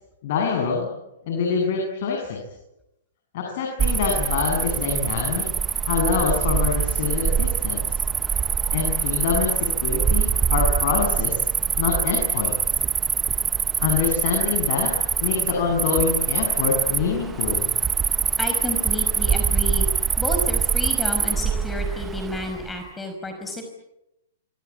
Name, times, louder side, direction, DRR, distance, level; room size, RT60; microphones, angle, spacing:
voice 1, 0.2-0.9 1.3-2.4 3.3-5.5 5.9-8.0 8.7-11.4 11.8-12.5 13.8-14.9 15.2-17.7, left 5 dB, 55° left, 2 dB, 7.8 m, -25 dB
Cricket, 3.8-22.7, right 7 dB, 15° right, 1.0 m, -24 dB
voice 2, 18.4-19.9 20.2-23.7, left 2 dB, 10° left, 4 dB, 5.3 m, -31 dB
26.5 x 24.5 x 8.7 m, 0.89 s
hypercardioid pair, 125°, 0 cm